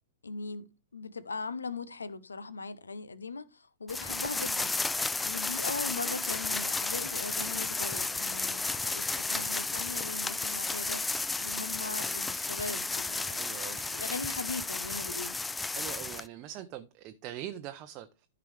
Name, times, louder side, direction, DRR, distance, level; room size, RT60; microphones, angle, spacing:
voice 1, 0.2-4.8 5.2-15.4, left 4 dB, 75° left, 0.7 m, -40 dB
sound 1, 3.9-16.3, left 3 dB, 10° left, 0.3 m, -33 dB
voice 2, 13.3-13.8 15.8-18.3, right 12 dB, 35° right, 0.6 m, -42 dB
13.5 x 4.9 x 3.3 m
figure-of-eight pair, 105°, 0 cm